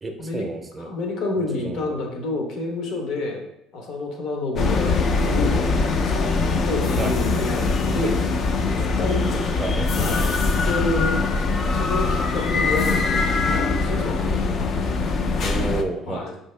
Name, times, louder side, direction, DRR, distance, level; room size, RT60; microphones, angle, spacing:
voice 1, 0.0-0.9 1.4-2.0 7.0-7.2 9.3-9.9 15.4-16.3, right 3 dB, 20° right, 4 dB, 0.6 m, -31 dB
voice 2, 0.8-3.4 3.7-6.3 6.6-8.2 8.8-9.3 9.9-11.2 11.7-14.7 16.1-16.3, left 2 dB, 65° left, 1 dB, 0.9 m, -29 dB
sound 1, 4.6-15.8, left 3 dB, 45° left, 0.4 m, -22 dB
4.4 x 2.7 x 3.2 m, 0.82 s
cardioid pair, 110°, 0 cm